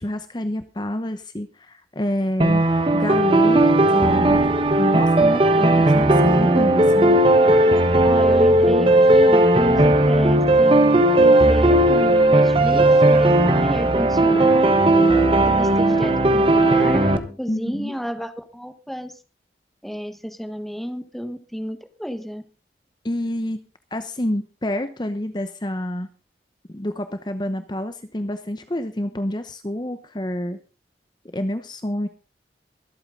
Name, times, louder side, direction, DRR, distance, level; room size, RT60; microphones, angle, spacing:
voice 1, 0.0-2.6 2.9-3.7 3.9-7.2 17.5-17.9 23.0-23.6 23.9-26.1 26.7-30.6 31.3-32.1, left 1 dB, 25° left, 10 dB, 0.9 m, -28 dB
sound 1, 2.4-17.2, right 1 dB, 30° right, 1.2 m, -16 dB
voice 2, 8.0-14.8 15.4-19.1 19.8-22.4, equal, ahead, 9 dB, 1.2 m, -31 dB
23.0 x 8.7 x 3.8 m, 0.32 s
head